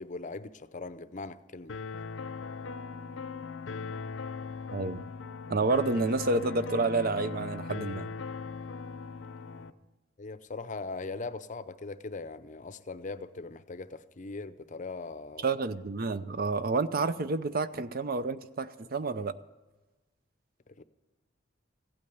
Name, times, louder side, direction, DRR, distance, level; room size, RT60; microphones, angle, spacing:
voice 1, 0.0-1.8 9.5-9.7 10.2-15.5 20.7-20.8, left 3 dB, 40° left, 0.6 m, -40 dB
sound 1, 1.7-9.7, left 4 dB, 85° left, 0.7 m, -39 dB
voice 2, 4.7-5.0 5.5-8.1 15.4-19.3, right 3 dB, 50° right, 0.6 m, -29 dB
15.5 x 8.7 x 9.5 m
head